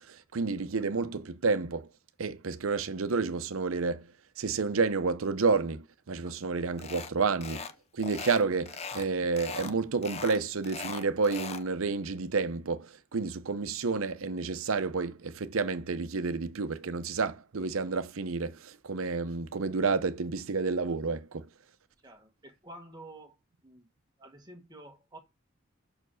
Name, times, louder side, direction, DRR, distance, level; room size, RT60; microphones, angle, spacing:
voice 1, 0.0-1.9 2.2-4.1 4.4-7.7 7.9-21.5, right 4 dB, 80° right, 0.7 m, -30 dB
sound 1, 6.8-7.1 7.4-7.7 8.0-9.1 9.4-9.7 10.0-11.7, left 5 dB, 30° left, 0.5 m, -40 dB
voice 2, 22.0-23.4 23.6-23.9 24.2-25.2, right 1 dB, 20° right, 1.0 m, -50 dB
6.0 x 4.6 x 6.2 m
head